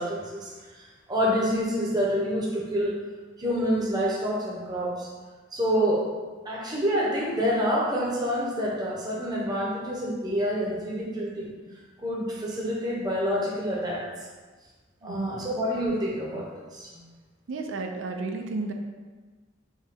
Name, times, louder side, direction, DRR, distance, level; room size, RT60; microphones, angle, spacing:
voice 1, 0.0-2.9 3.4-5.1 5.5-6.0 6.4-11.5 12.0-14.0 15.0-16.5 16.7-17.0, equal, 20° right, -4 dB, 0.7 m, -27 dB
voice 2, 15.0-15.3 17.5-18.7, right 3 dB, 80° right, 4 dB, 0.4 m, -32 dB
4.5 x 2.2 x 3.6 m, 1.3 s
head